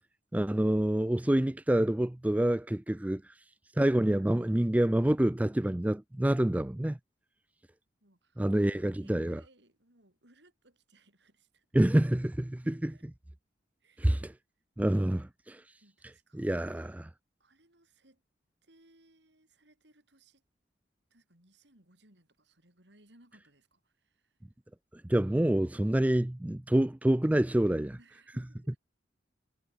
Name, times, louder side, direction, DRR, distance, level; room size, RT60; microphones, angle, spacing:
voice 1, 0.3-3.2 3.8-7.0 8.4-9.4 11.7-12.9 14.0-14.3 14.8-15.6 16.4-16.9 25.1-28.0, right 1 dB, 10° right, 0.3 m, -27 dB
voice 2, 8.0-11.7 12.6-13.1 13.8-14.4 15.1-15.2 15.8-17.0 17.4-18.2 18.6-20.4 21.1-24.5 28.0-28.8, right 2 dB, 70° right, 7.4 m, -64 dB
head